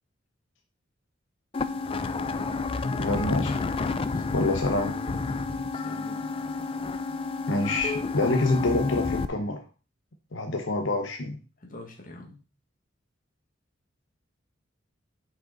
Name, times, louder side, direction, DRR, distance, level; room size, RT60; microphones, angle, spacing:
sound 1, 1.5-9.2, left 4 dB, 30° left, 0.4 m, -30 dB
voice 1, 3.0-3.5 4.3-4.9 7.5-9.6 10.3-11.4, left 2 dB, 80° left, 3 dB, 0.9 m, -26 dB
voice 2, 4.1-4.5 5.3-6.3 11.6-12.4, left 1 dB, 45° left, 2 dB, 1.6 m, -45 dB
6.4 x 5.5 x 3.9 m, 0.33 s
head